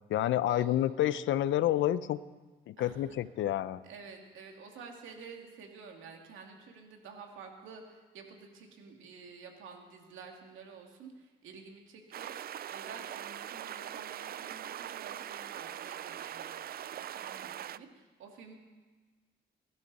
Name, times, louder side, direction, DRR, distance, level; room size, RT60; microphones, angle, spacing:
voice 1, 0.1-2.2 2.7-3.8, left 12 dB, 75° left, 16 dB, 0.6 m, -29 dB
voice 2, 3.8-16.6 16.9-18.5, right 5 dB, 80° right, 2 dB, 2.5 m, -50 dB
sound 1, 12.1-17.8, right 10 dB, 50° right, 0.4 m, -42 dB
23.0 x 12.0 x 4.1 m, 1.3 s
cardioid pair, 90°, 20 cm